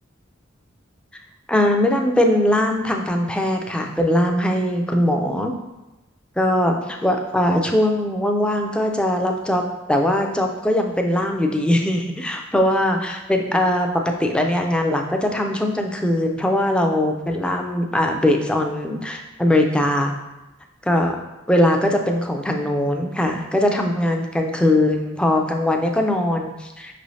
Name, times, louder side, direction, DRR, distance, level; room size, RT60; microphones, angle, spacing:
voice 1, 1.5-5.5 6.4-9.6 9.9-13.9 14.2-20.1 20.9-21.2 21.5-27.0, left 1 dB, 5° left, 2 dB, 0.3 m, -20 dB
5.3 x 3.1 x 2.6 m, 1.0 s
head